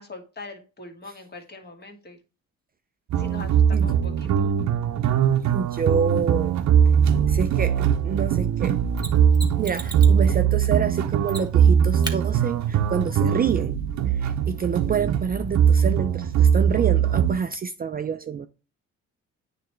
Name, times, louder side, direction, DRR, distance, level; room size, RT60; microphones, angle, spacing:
voice 1, 0.0-2.2 3.2-4.5, left 3 dB, 35° left, 1.7 m, -41 dB
sound 1, 3.1-17.4, right 8 dB, 65° right, 0.7 m, -21 dB
voice 2, 5.5-6.6 6.9-7.0 7.3-8.8 9.6-13.8 14.1-18.5, right 7 dB, 30° right, 0.4 m, -27 dB
Mechanisms, 9.0-10.2 11.3-11.7 12.0-12.2 14.9-15.0, right 2 dB, 15° right, 1.4 m, -35 dB
9.1 x 3.4 x 3.1 m
cardioid pair, 90°, 30 cm